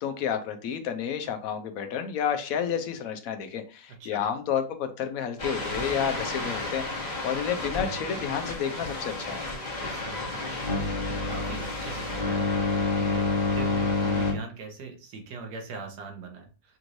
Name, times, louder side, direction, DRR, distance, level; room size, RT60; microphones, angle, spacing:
voice 1, 0.0-9.4, left 8 dB, 65° left, 8 dB, 1.0 m, -30 dB
sound 1, 5.4-14.3, left 2 dB, 30° left, 1.3 m, -29 dB
voice 2, 9.9-16.8, right 4 dB, 75° right, 2 dB, 1.6 m, -42 dB
6.0 x 3.1 x 2.5 m, 0.35 s
omnidirectional pair, 1.8 m